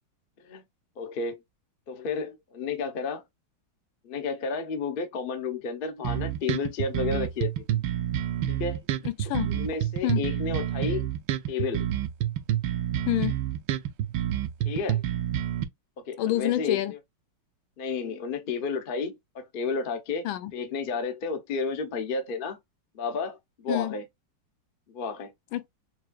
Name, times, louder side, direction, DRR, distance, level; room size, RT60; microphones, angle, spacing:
voice 1, 1.0-1.4 1.9-3.2 4.0-7.8 8.5-8.8 9.5-11.1 11.5-11.9 14.6-15.0 16.0-17.0 17.8-20.3 20.5-22.6 22.9-24.0 24.9-25.3, left 4 dB, 60° left, 0.5 m, -32 dB
sound 1, 6.0-15.6, right 11 dB, 75° right, 1.2 m, -28 dB
voice 2, 9.0-9.5 10.0-10.2 13.1-13.4 16.2-16.9 20.2-20.5 23.7-23.9 25.5-25.7, left 14 dB, 85° left, 1.4 m, -27 dB
6.0 x 2.4 x 2.3 m
omnidirectional pair, 2.2 m